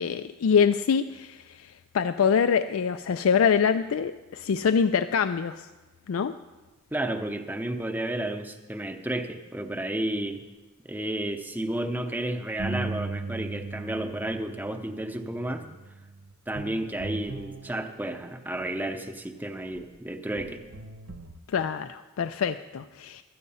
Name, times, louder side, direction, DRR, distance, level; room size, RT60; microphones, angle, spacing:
voice 1, 0.0-1.7 1.9-5.7 6.1-6.3 21.5-23.2, left 6 dB, 90° left, 10 dB, 0.4 m, -24 dB
voice 2, 6.9-10.4 10.8-15.6 16.5-20.6, right 1 dB, 10° right, 6 dB, 0.7 m, -32 dB
sound 1, 12.6-18.5 19.7-19.9 20.4-21.4, right 3 dB, 75° right, 0.9 m, -38 dB
13.0 x 9.4 x 5.5 m, 1.2 s
head